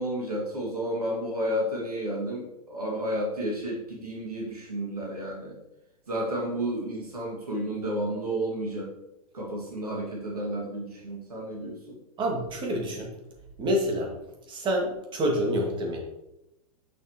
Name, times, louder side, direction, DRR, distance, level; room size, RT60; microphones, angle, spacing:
voice 1, 0.0-5.6 6.1-8.9 9.3-12.0, right 1 dB, 80° right, -2 dB, 2.0 m, -31 dB
voice 2, 12.2-13.1 13.6-14.1 14.5-16.0, equal, 25° right, 0 dB, 1.9 m, -27 dB
6.9 x 6.5 x 3.0 m, 0.90 s
figure-of-eight pair, 100°, 19 cm